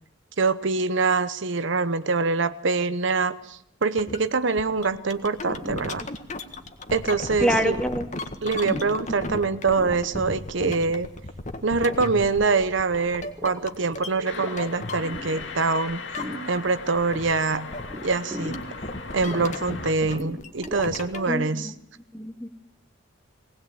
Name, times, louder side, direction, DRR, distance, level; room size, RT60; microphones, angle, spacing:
voice 1, 0.4-6.0 6.9-7.8 8.4-11.1 11.6-16.0 16.5-17.7 18.0-18.6 19.1-21.7, right 4 dB, 70° right, 13 dB, 0.9 m, -24 dB
sound 1, 4.0-4.2 4.6-15.6 15.9-16.7 17.0-21.3, left 2 dB, 35° left, 1.7 m, -35 dB
sound 2, 5.1-21.2, equal, 20° right, 2.6 m, -42 dB
voice 2, 7.4-8.1 21.3-21.7 22.1-22.5, equal, 5° left, 5 dB, 2.0 m, -25 dB
sound 3, 14.3-19.9, left 4 dB, 60° left, 2.3 m, -38 dB
20.0 x 19.0 x 8.8 m, 0.69 s
head